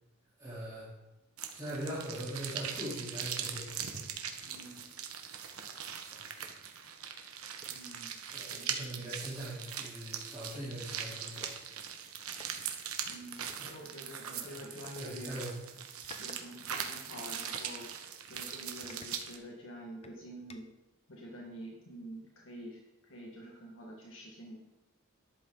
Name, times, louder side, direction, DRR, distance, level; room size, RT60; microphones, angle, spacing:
voice 1, 0.4-0.9 1.5-3.7 6.1-6.2 8.3-11.5 13.6-13.8 14.2-14.6 15.0-15.5, right 1 dB, 15° right, -9 dB, 3.5 m, -41 dB
sound 1, 1.4-19.4, right 8 dB, 85° right, 1.3 m, -41 dB
voice 2, 4.4-4.9 7.7-9.1 13.1-15.4 16.2-17.9 18.3-20.7 21.1-24.6, equal, 65° left, -1 dB, 1.8 m, -47 dB
sound 2, 6.4-6.6 7.1-7.2 7.6-7.9 8.9-9.0 9.2-10.6 11.4-11.6 12.3-12.5 13.5-13.7 14.8-15.0 15.8-16.4 16.8-17.7 18.2-18.3 18.8-19.6 20.0-20.8, left 2 dB, 30° left, 0.7 m, -55 dB
13.0 x 11.0 x 3.9 m, 0.99 s
head